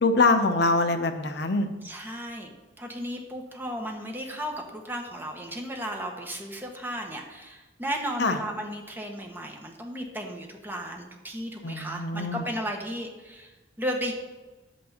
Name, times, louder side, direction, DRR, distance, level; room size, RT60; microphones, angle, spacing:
voice 1, 0.0-1.7 8.2-8.4 11.6-12.5, left 3 dB, 65° left, 7 dB, 0.8 m, -24 dB
voice 2, 1.8-2.5 2.8-14.1, equal, 10° right, 1 dB, 1.4 m, -35 dB
10.5 x 8.2 x 4.3 m, 1.1 s
head